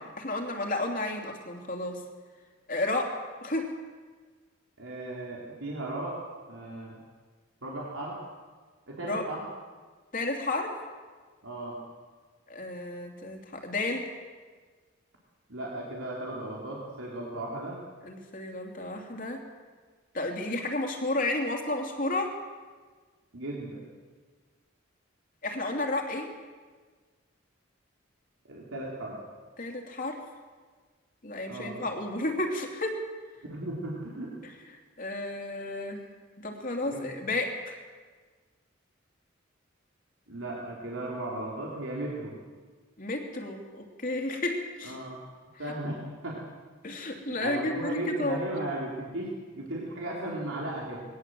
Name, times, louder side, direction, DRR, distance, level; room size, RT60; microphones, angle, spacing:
voice 1, 0.0-2.0 2.7-3.7 9.0-9.3 10.1-10.8 12.5-14.1 18.0-19.4 20.1-22.4 25.4-26.3 29.6-30.2 31.2-33.0 35.0-36.0 36.4-37.8 43.0-45.0 45.5-45.6 46.8-48.4, left 2 dB, 45° left, 2 dB, 2.9 m, -32 dB
voice 2, 4.8-6.2 6.5-7.0 7.6-8.2 8.9-9.4 11.4-11.7 15.5-17.8 23.3-23.8 28.5-29.2 31.5-31.8 33.5-34.3 36.8-37.1 40.3-42.4 44.8-45.2 45.6-46.0 46.2-46.4 47.3-51.0, right 1 dB, 90° right, -3 dB, 3.8 m, -36 dB
21.5 x 18.0 x 7.7 m, 1.5 s
head